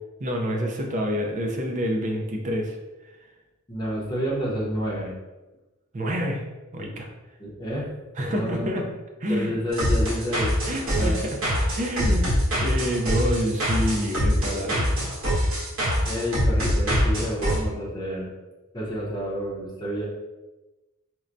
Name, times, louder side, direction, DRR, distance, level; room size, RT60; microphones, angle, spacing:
voice 1, 0.2-2.8 5.9-6.4 6.7-7.1 8.2-8.9 9.2-9.5 10.7-11.4 11.8-12.2 12.6-14.9, equal, 35° right, 2 dB, 0.5 m, -27 dB
voice 2, 3.7-5.1 7.4-7.9 8.3-8.8 9.3-10.6 10.9-11.5 12.0-12.1 16.1-18.3 18.7-20.1, equal, 20° left, -4 dB, 0.7 m, -29 dB
sound 1, 9.7-17.6, equal, 65° right, 1.3 m, -24 dB
4.4 x 2.1 x 2.5 m, 1.1 s
head